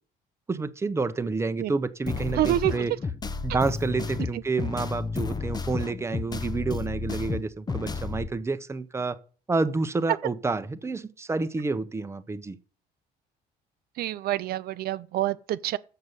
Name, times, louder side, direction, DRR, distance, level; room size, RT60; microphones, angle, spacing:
voice 1, 0.5-2.9 3.4-9.2 9.5-12.6, right 3 dB, 15° right, 0.8 m, -29 dB
sound 1, 2.1-8.3, left 4 dB, 25° left, 0.7 m, -32 dB
voice 2, 2.4-2.7 14.0-15.8, right 14 dB, 65° right, 0.5 m, -27 dB
7.3 x 6.7 x 8.0 m
cardioid pair, 110°, 17 cm